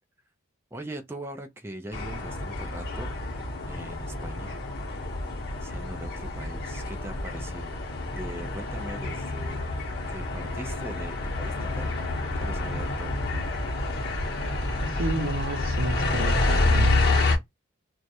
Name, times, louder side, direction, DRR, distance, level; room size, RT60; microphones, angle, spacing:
voice 1, 0.7-3.1 3.7-4.6 5.6-12.0 12.3-13.2, right 1 dB, 10° right, 0.3 m, -41 dB
sound 1, 1.9-17.4, left 2 dB, 55° left, 0.8 m, -28 dB
voice 2, 14.8-17.0, right 2 dB, 75° right, 0.6 m, -31 dB
2.3 x 2.0 x 2.7 m
head